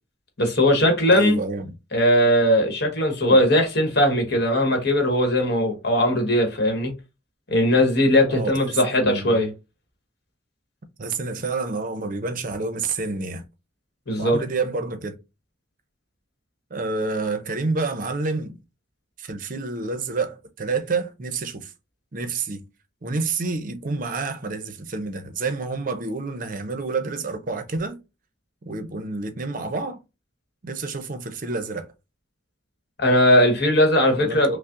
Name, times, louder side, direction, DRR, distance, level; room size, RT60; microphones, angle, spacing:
voice 1, 0.4-1.4 1.9-6.9 7.5-9.5 14.1-14.4 33.0-34.6, left 1 dB, 55° left, 1.1 m, -19 dB
voice 2, 1.1-1.7 3.2-3.4 8.3-9.4 11.0-13.4 14.2-15.2 16.7-18.6 19.2-21.7 22.1-22.6 23.0-28.0 28.6-30.0 30.6-31.9 34.2-34.6, right 3 dB, 45° right, 0.5 m, -28 dB
5.5 x 2.0 x 2.4 m
head